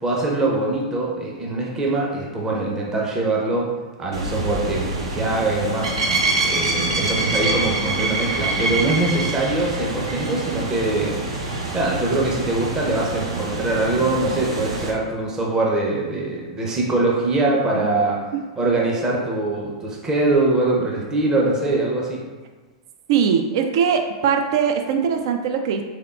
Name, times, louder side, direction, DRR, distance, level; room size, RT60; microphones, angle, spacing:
voice 1, 0.0-3.7 4.0-5.9 6.4-11.2 11.7-18.2 18.6-22.2, right 2 dB, 20° right, -3 dB, 0.6 m, -23 dB
sound 1, 4.1-14.9, right 2 dB, 75° right, 0.7 m, -25 dB
voice 2, 23.1-25.8, right 7 dB, 60° right, 5 dB, 0.3 m, -21 dB
3.6 x 3.5 x 2.3 m, 1.3 s
hypercardioid pair, 110°, 3 cm